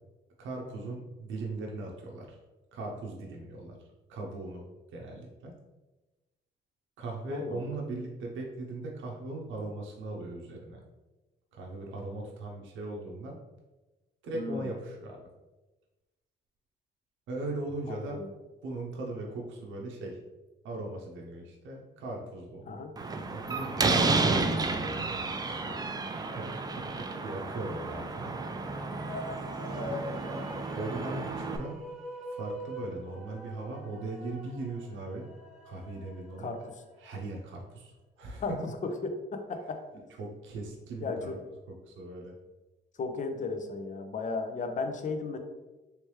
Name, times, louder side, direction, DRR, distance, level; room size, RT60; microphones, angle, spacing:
voice 1, 0.4-2.4 2.7-3.8 4.1-4.7 4.9-5.5 7.0-10.8 11.5-13.4 14.2-15.3 17.3-18.2 18.6-20.2 20.6-22.8 23.3-25.8 26.3-26.4 27.0-28.3 30.8-31.8 32.3-35.3 35.6-36.5 37.0-38.7 40.2-41.3 41.7-42.3, right 2 dB, 80° right, -1 dB, 0.7 m, -39 dB
voice 2, 7.3-7.7 14.3-14.7 17.9-18.3 22.7-22.9 29.8-30.0 36.4-36.7 38.4-38.5 38.8-39.8 41.0-41.4 43.0-45.4, left 4 dB, 40° left, 6 dB, 0.5 m, -35 dB
Slam, 23.0-31.6, right 3 dB, 20° right, 0.4 m, -31 dB
sound 1, 28.6-37.1, equal, ahead, 1.3 m, -44 dB
3.2 x 3.1 x 3.1 m, 1.1 s
cardioid pair, 90°, 20 cm